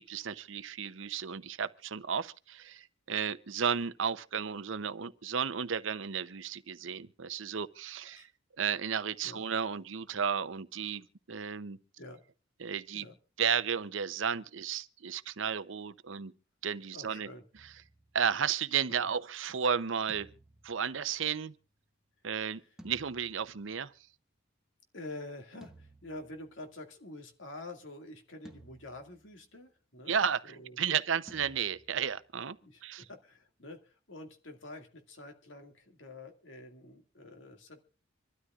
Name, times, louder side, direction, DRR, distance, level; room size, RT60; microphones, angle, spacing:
voice 1, 0.0-8.3 8.6-11.8 12.6-13.0 13.4-16.3 16.6-17.3 18.1-20.3 20.6-21.5 22.2-23.9 30.1-32.6 32.8-33.0, right 7 dB, 75° right, 0.7 m, -33 dB
voice 2, 16.9-17.4 18.9-19.1 22.6-22.7 24.9-30.2 30.4-30.8 31.3-31.4 32.6-37.8, left 2 dB, 75° left, 2.2 m, -47 dB
sound 1, 17.6-18.9 20.1-21.8 22.8-24.1 25.6-27.0 28.5-29.6 31.3-32.7, right 1 dB, 5° right, 1.1 m, -58 dB
26.0 x 13.0 x 2.4 m
head